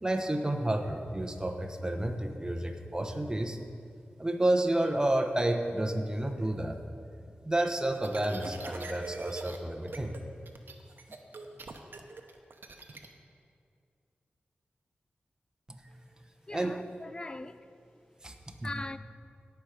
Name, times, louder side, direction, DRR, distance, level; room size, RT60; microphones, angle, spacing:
voice 1, 0.0-3.6 4.2-6.8 7.4-10.2 15.7-15.8 16.5-16.8 18.2-18.7, right 1 dB, 20° right, 1.0 m, -30 dB
sound 1, 8.0-9.6 9.9-10.2 10.5-13.1, right 3 dB, 70° right, 0.9 m, -43 dB
voice 2, 16.5-17.7 18.6-19.0, left 2 dB, 25° left, 0.4 m, -40 dB
17.5 x 5.9 x 5.1 m
wide cardioid pair, 65°, 4 cm